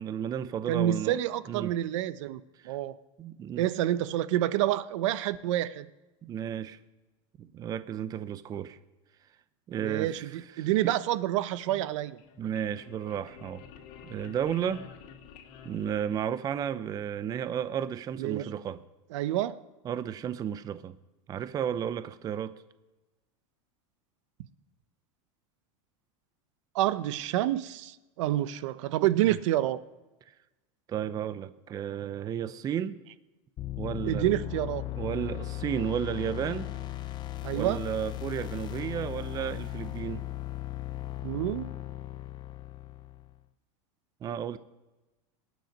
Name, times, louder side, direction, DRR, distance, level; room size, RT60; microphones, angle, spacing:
voice 1, 0.0-1.2 1.5-1.7 2.6-2.8 3.2-3.7 6.2-6.8 7.4-8.8 9.7-10.9 11.8-11.9 12.4-13.6 14.0-14.9 15.6-18.8 19.8-21.0 21.3-22.6 29.2-29.4 30.3-30.4 30.9-33.0 33.8-34.4 35.0-36.7 37.5-40.2 44.2-44.6, right 9 dB, 20° right, 14 dB, 0.5 m, -33 dB
voice 2, 0.7-3.0 3.6-5.9 9.8-12.2 18.2-18.5 19.1-19.6 26.7-29.8 34.0-34.8 37.4-37.8 41.2-41.7, right 13 dB, 65° right, 15 dB, 0.7 m, -28 dB
sound 1, 12.0-16.7, left 7 dB, 50° left, 2.2 m, -51 dB
sound 2, 33.6-43.4, left 14 dB, 25° left, 0.6 m, -37 dB
19.0 x 9.3 x 5.3 m, 1.1 s
supercardioid pair, 145°, 17 cm